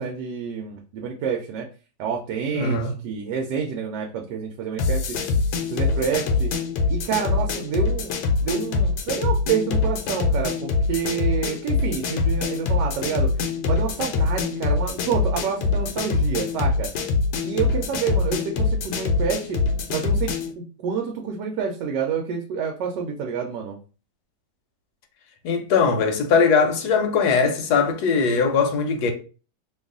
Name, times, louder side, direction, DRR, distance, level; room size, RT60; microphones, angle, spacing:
voice 1, 0.0-1.7 2.0-5.2 5.7-6.5 6.9-13.3 13.6-16.9 17.4-19.6 19.9-23.8, right 6 dB, 80° right, 1.2 m, -28 dB
voice 2, 2.5-2.9 25.4-29.1, left 5 dB, 70° left, 1.2 m, -20 dB
sound 1, 4.8-20.5, left 4 dB, 90° left, 1.3 m, -24 dB
3.0 x 2.3 x 3.7 m
omnidirectional pair, 1.8 m